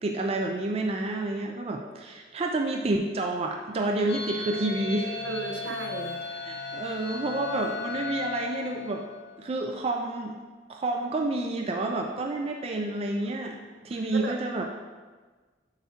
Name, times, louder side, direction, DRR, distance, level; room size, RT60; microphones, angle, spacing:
voice 1, 0.0-5.3 6.5-9.0 9.4-10.4 10.7-13.6 13.8-14.6, right 2 dB, 35° right, 3 dB, 0.4 m, -29 dB
sound 1, 4.1-9.5, left 4 dB, 75° left, 0.7 m, -36 dB
voice 2, 5.2-6.2 13.6-13.7 14.1-14.3, right 3 dB, 75° right, 3 dB, 0.7 m, -35 dB
7.7 x 4.6 x 2.8 m, 1.4 s
head